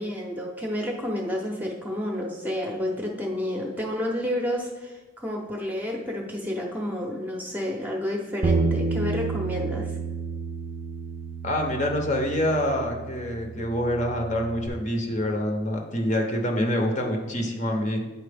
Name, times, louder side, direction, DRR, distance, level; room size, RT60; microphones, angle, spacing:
voice 1, 0.0-10.0, left 1 dB, 10° right, -1 dB, 0.7 m, -30 dB
Bass guitar, 8.4-14.7, right 4 dB, 35° right, 0.3 m, -30 dB
voice 2, 11.4-18.0, left 1 dB, 35° left, 2 dB, 0.8 m, -26 dB
9.2 x 4.3 x 3.4 m, 1.2 s
head